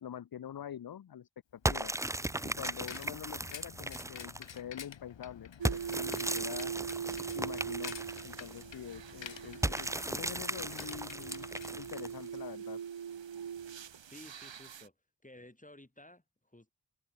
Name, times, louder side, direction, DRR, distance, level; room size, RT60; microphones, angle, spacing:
voice 1, 0.0-1.9 2.4-6.7 7.3-8.0 8.2-11.5 11.8-12.8, left 9 dB, 55° left, 0.6 m, -45 dB
Bicycle, 1.6-12.5, left 8 dB, 90° left, 1.2 m, -50 dB
sound 1, 1.7-4.6 5.7-8.6 9.6-12.3, right 1 dB, 5° right, 0.5 m, -36 dB
sound 2, 5.6-14.9, right 8 dB, 85° right, 1.2 m, -42 dB
voice 2, 14.0-14.9 15.2-16.7, left 1 dB, 15° left, 7.5 m, -54 dB
wide cardioid pair, 80°, 43 cm